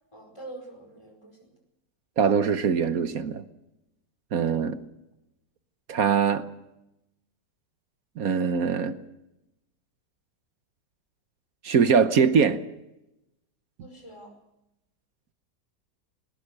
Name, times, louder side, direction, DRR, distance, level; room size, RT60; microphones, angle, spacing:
voice 1, 0.1-1.5 4.3-4.6 13.8-14.3, right 2 dB, 15° left, 4.9 m, -45 dB
voice 2, 2.2-3.4 4.3-4.8 5.9-6.4 8.2-9.0 11.6-12.6, right 6 dB, 55° right, 1.4 m, -22 dB
20.5 x 19.5 x 6.6 m
omnidirectional pair, 1.9 m